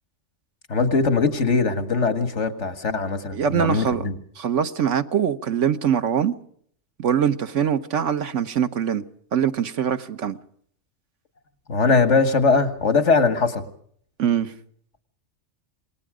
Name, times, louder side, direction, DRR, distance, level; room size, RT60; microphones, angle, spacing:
voice 1, 0.7-4.2 11.7-13.7, left 4 dB, 75° left, 2.1 m, -21 dB
voice 2, 3.3-4.0 4.4-6.3 7.0-9.0 9.3-10.4 14.2-14.5, right 8 dB, 85° right, 1.4 m, -23 dB
27.0 x 19.5 x 5.0 m
omnidirectional pair, 1.2 m